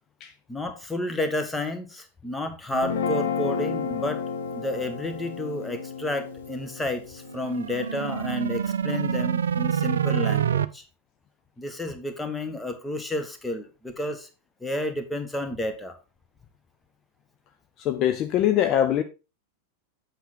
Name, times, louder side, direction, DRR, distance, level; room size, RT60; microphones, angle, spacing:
voice 1, 0.5-4.2 4.5-10.8 11.6-14.3 14.6-16.0, left 1 dB, 5° left, 1.3 m, -31 dB
Guitar, 2.7-9.1, left 6 dB, 60° left, 1.2 m, -32 dB
sound 1, 7.3-10.6, right 8 dB, 65° right, 0.4 m, -26 dB
voice 2, 17.8-19.0, left 11 dB, 35° left, 0.6 m, -22 dB
8.0 x 6.0 x 4.1 m
figure-of-eight pair, 90°, 0 cm